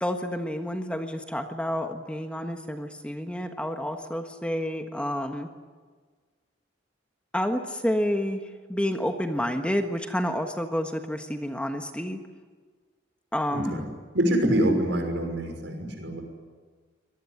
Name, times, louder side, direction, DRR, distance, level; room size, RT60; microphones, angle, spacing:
voice 1, 0.0-5.5 7.3-12.2 13.3-13.8, equal, 5° left, 5 dB, 1.4 m, -29 dB
voice 2, 13.5-13.8 14.1-16.2, right 1 dB, 70° right, 4 dB, 5.9 m, -25 dB
25.0 x 19.0 x 9.9 m, 1.5 s
head